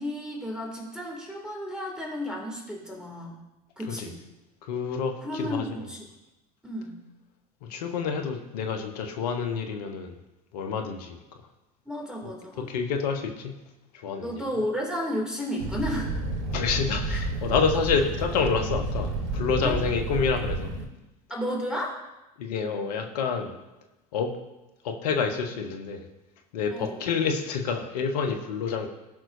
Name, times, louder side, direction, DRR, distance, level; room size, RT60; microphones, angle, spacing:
voice 1, 0.0-3.4 3.8-4.2 5.2-6.0 6.6-7.0 11.9-12.7 14.2-16.2 17.1-17.2 19.5-19.8 21.3-22.0 26.7-27.0, equal, 5° right, -2 dB, 2.8 m, -33 dB
voice 2, 4.7-5.6 7.7-10.1 10.5-11.2 12.6-13.5 14.0-14.4 16.5-20.8 22.4-23.5 24.1-24.3 24.8-26.0 26.5-28.9, left 5 dB, 70° left, 5 dB, 1.2 m, -28 dB
Fire, 15.6-20.9, right 2 dB, 70° right, 3.0 m, -30 dB
17.5 x 6.1 x 2.7 m, 1.0 s
figure-of-eight pair, 70°, 21 cm